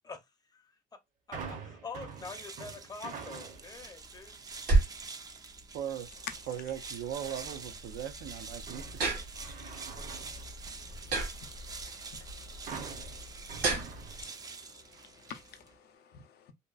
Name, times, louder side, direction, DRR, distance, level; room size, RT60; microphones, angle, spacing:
voice 1, 1.3-4.4, left 4 dB, 20° left, 0.6 m, -45 dB
sound 1, 1.3-3.8 4.3-4.7 7.1-7.8 8.3-11.1 12.7-14.6 14.9-15.1, right 5 dB, 50° right, 0.7 m, -46 dB
sound 2, 2.1-15.8, right 4 dB, 20° right, 0.4 m, -47 dB
sound 3, 3.5-14.2, right 2 dB, 70° right, 1.3 m, -35 dB
voice 2, 5.7-6.1 6.5-9.2, right 9 dB, 85° right, 0.5 m, -39 dB
voice 3, 11.4-13.3 15.2-16.5, left 7 dB, 70° left, 0.5 m, -53 dB
2.8 x 2.2 x 2.3 m
cardioid pair, 110°, 17 cm